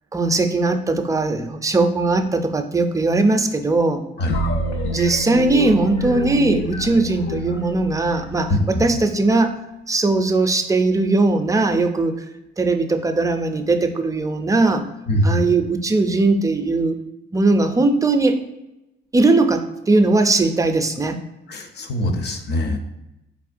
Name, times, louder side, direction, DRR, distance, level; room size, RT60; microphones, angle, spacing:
voice 1, 0.1-4.1 4.9-8.5 8.8-9.5 9.9-12.2 12.6-14.8 15.2-17.0 17.3-18.4 19.1-21.2, right 3 dB, 15° right, 7 dB, 0.4 m, -19 dB
sound 1, 4.3-9.0, equal, 85° left, 0.8 m, -27 dB
voice 2, 8.5-9.0 15.1-15.5 21.5-22.8, left 1 dB, 55° left, 5 dB, 0.7 m, -22 dB
4.3 x 3.5 x 2.5 m, 0.94 s
cardioid pair, 90°, 20 cm